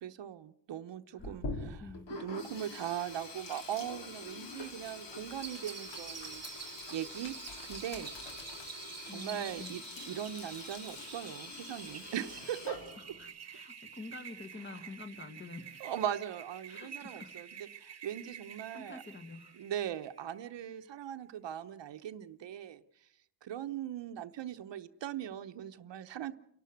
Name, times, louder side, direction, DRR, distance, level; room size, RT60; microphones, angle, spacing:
voice 1, 0.0-1.8 2.1-6.4 6.9-7.4 7.6-8.1 9.1-12.8 15.8-17.5 17.8-19.0 19.6-22.8 23.4-26.3, right 10 dB, 75° right, 7 dB, 0.9 m, -40 dB
Sink (filling or washing), 1.2-13.2, left 3 dB, 70° left, 4.1 m, -45 dB
voice 2, 1.8-2.1 9.1-9.7 12.9-15.9 16.7-17.7 18.7-19.6, left 3 dB, 25° left, 9 dB, 1.5 m, -48 dB
sound 1, 5.4-20.6, right 7 dB, 35° right, 1.1 m, -49 dB
29.0 x 12.0 x 7.9 m, 0.72 s
wide cardioid pair, 175°, 44 cm